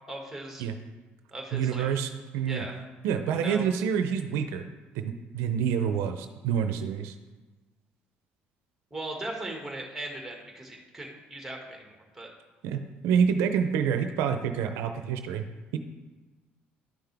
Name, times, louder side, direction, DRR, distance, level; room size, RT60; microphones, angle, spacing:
voice 1, 0.1-0.6 1.3-1.9 2.5-2.8 3.3-3.7 8.9-12.3, right 1 dB, 5° right, 0 dB, 2.0 m, -38 dB
voice 2, 1.5-2.6 3.0-4.6 4.9-7.1 12.6-15.4 15.7-15.8, right 7 dB, 85° right, 7 dB, 0.6 m, -27 dB
11.5 x 5.8 x 3.5 m, 1.2 s
cardioid pair, 95°, 4 cm